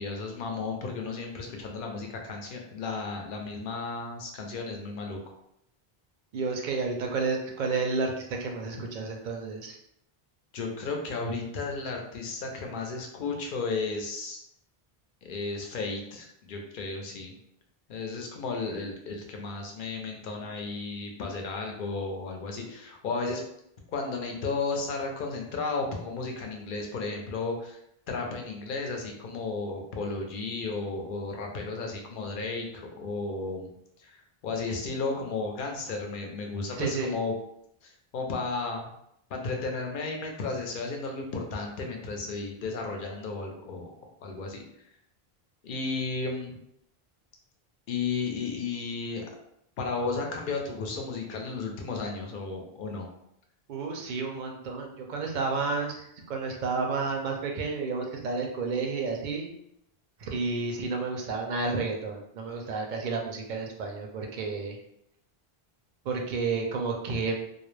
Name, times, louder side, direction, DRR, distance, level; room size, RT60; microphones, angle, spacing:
voice 1, 0.0-5.2 10.5-14.4 15.2-17.3 17.9-23.4 23.9-27.8 28.1-33.7 34.0-34.2 34.4-37.3 37.8-38.9 39.3-43.9 44.2-44.6 45.6-46.6 47.9-49.2 49.8-53.1, left 3 dB, 60° left, 2 dB, 0.7 m, -33 dB
voice 2, 6.3-9.8 36.8-37.1 53.7-59.5 60.2-64.8 66.0-67.4, right 4 dB, 55° right, 2 dB, 0.6 m, -31 dB
2.3 x 2.0 x 3.1 m, 0.76 s
omnidirectional pair, 1.0 m